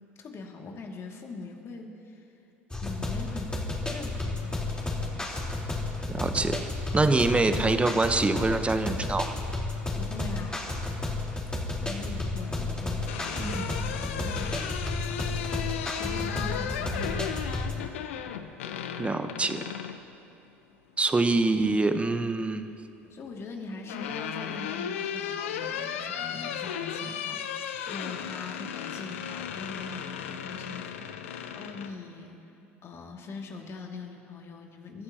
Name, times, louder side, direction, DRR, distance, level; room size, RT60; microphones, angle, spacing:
voice 1, 0.2-2.2 2.8-5.4 9.9-10.7 11.8-17.7 23.0-32.5 32.8-35.0, left 3 dB, 40° left, 1 dB, 2.5 m, -42 dB
sound 1, 2.7-17.8, left 2 dB, 15° left, 3.9 m, -32 dB
voice 2, 6.2-6.6 6.9-9.3 13.4-13.8 19.0-19.6 21.0-22.7, right 3 dB, 15° right, 9 dB, 1.0 m, -25 dB
sound 2, 13.1-20.0 21.5-22.2 23.4-31.9, left 8 dB, 75° left, 0.8 m, -35 dB
29.5 x 14.5 x 3.0 m, 3.0 s
hypercardioid pair, 70°, 7 cm